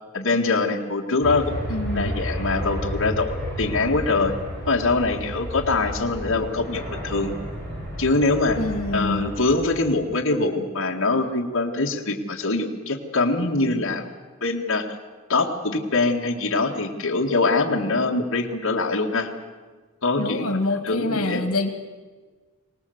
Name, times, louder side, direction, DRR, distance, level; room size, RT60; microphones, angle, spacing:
voice 1, 0.1-1.6 1.9-4.3 4.7-7.3 8.0-8.6 8.9-14.0 14.4-14.9 15.3-19.3 20.0-20.6 20.9-21.4, left 3 dB, 65° left, -1 dB, 2.1 m, -23 dB
sound 1, 1.2-10.0, equal, 50° right, 7.5 m, -32 dB
voice 2, 1.7-2.1 8.6-9.3 20.2-21.7, left 2 dB, 85° left, 7 dB, 2.2 m, -26 dB
24.5 x 19.0 x 8.0 m, 1.4 s
head